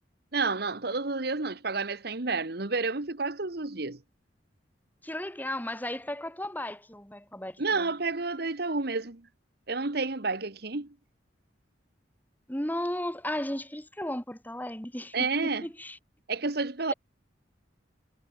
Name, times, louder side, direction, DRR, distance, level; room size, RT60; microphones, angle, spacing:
voice 1, 0.3-4.0 7.6-9.2 9.7-10.9 15.1-15.6 16.3-16.9, right 3 dB, 60° right, 1.4 m, -30 dB
voice 2, 5.0-7.8 12.5-16.0 16.9-17.0, left 1 dB, 10° left, 4.9 m, -35 dB
head